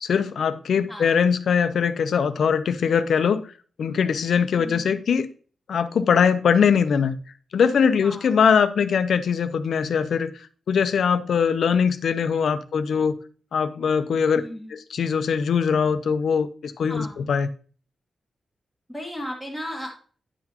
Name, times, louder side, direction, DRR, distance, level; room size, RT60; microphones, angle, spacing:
voice 1, 0.0-3.4 3.8-5.3 5.7-7.2 7.5-13.2 13.5-14.4 14.7-17.5, left 6 dB, 70° left, 0.6 m, -21 dB
voice 2, 0.9-1.2 4.6-4.9 8.0-8.3 14.3-14.7 16.9-17.2 18.9-19.9, equal, 5° right, 1.5 m, -35 dB
9.9 x 6.0 x 2.9 m
wide cardioid pair, 150°, 0 cm